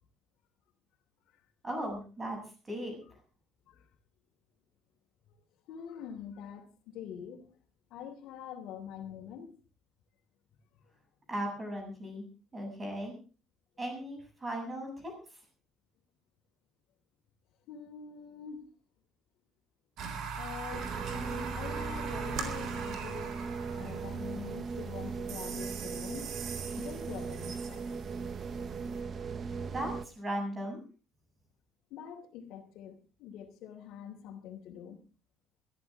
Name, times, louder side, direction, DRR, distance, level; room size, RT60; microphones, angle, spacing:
voice 1, 1.6-2.4 2.6-3.0 11.3-12.2 12.5-13.1 13.8-15.1 29.7-30.8, right 1 dB, 20° right, 3 dB, 7.7 m, -37 dB
voice 2, 5.7-7.5 7.9-9.5 17.7-18.7 20.4-23.5 23.7-26.3 26.8-27.9 31.9-35.0, left 8 dB, 80° left, -2 dB, 3.0 m, -45 dB
sound 1, 20.0-29.0, right 5 dB, 60° right, 3.9 m, -41 dB
sound 2, 20.7-30.1, right 5 dB, 35° right, 0.9 m, -38 dB
22.5 x 14.0 x 3.6 m, 0.36 s
cardioid pair, 165°, 0 cm